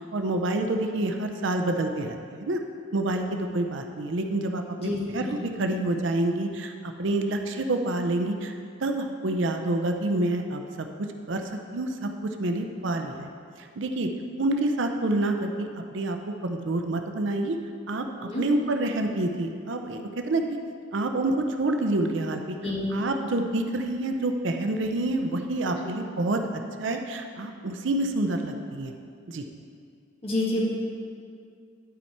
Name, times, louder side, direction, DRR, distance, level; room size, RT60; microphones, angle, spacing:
voice 1, 0.1-2.6 2.9-8.5 8.8-11.4 11.7-13.3 13.6-14.1 14.4-16.2 16.4-17.6 17.9-18.1 18.4-20.6 20.9-22.6 22.9-28.9 29.3-29.4, right 2 dB, 65° right, 5 dB, 0.6 m, -28 dB
voice 2, 4.8-5.3 18.2-18.4 22.6-22.9 25.8-25.9 30.2-30.7, left 1 dB, 30° left, -4 dB, 1.5 m, -28 dB
12.0 x 4.6 x 4.3 m, 2.3 s
head